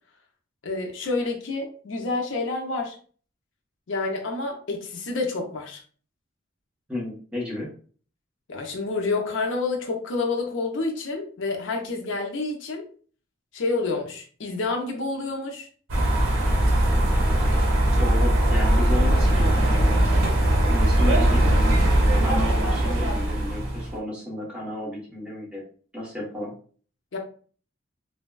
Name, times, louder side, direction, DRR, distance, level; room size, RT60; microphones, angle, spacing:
voice 1, 0.6-2.9 3.9-5.8 8.5-12.9 13.5-15.7 27.1-27.2, left 3 dB, 70° left, 1 dB, 0.5 m, -28 dB
voice 2, 6.9-7.7 18.0-20.2 20.6-21.6 22.2-25.6 25.9-26.5, left 1 dB, 5° right, -5 dB, 0.8 m, -32 dB
sound 1, 15.9-23.9, right 1 dB, 85° right, 0.7 m, -20 dB
3.3 x 2.1 x 2.2 m, 0.43 s
head